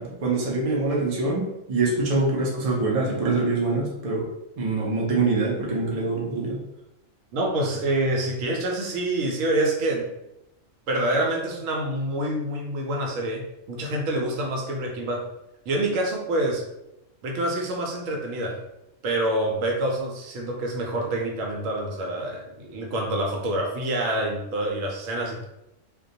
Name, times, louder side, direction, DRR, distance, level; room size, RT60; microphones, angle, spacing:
voice 1, 0.0-4.3 4.6-6.6, right 3 dB, 55° right, -2 dB, 0.4 m, -24 dB
voice 2, 7.3-10.1 10.9-15.3 15.7-16.6 17.2-18.6 19.0-25.5, right 1 dB, 80° right, 0 dB, 0.9 m, -26 dB
2.2 x 2.1 x 2.6 m, 0.87 s
omnidirectional pair, 1.3 m